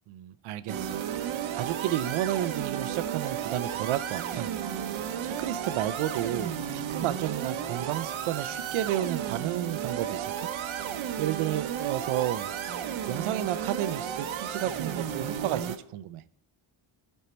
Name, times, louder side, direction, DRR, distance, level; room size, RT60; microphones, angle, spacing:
voice 1, 0.1-1.0 1.5-4.5 5.2-10.5 10.9-12.5 13.1-16.2, right 12 dB, 90° right, 14 dB, 0.7 m, -32 dB
sound 1, 0.7-15.8, right 9 dB, 70° right, 1.0 m, -33 dB
14.0 x 5.6 x 4.4 m, 0.67 s
cardioid pair, 110°, 49 cm